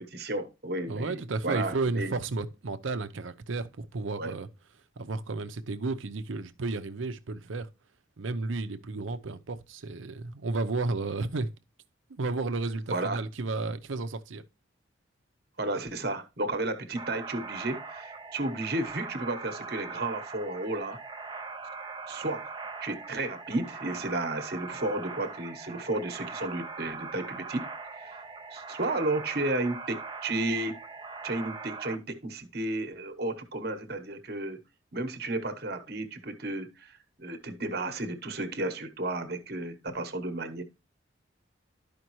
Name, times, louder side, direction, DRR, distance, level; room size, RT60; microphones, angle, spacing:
voice 1, 0.0-2.1 4.2-4.3 12.9-13.2 15.6-21.0 22.1-22.5 22.8-27.7 28.0-28.2 28.5-30.8 31.2-34.6 34.9-40.6, right 2 dB, 50° right, 1.1 m, -33 dB
voice 2, 0.9-4.5 5.0-7.7 8.2-11.5 12.1-14.4, right 3 dB, 85° right, 0.7 m, -32 dB
sound 1, 17.0-32.0, right 4 dB, 25° right, 0.5 m, -41 dB
12.5 x 5.1 x 3.1 m
head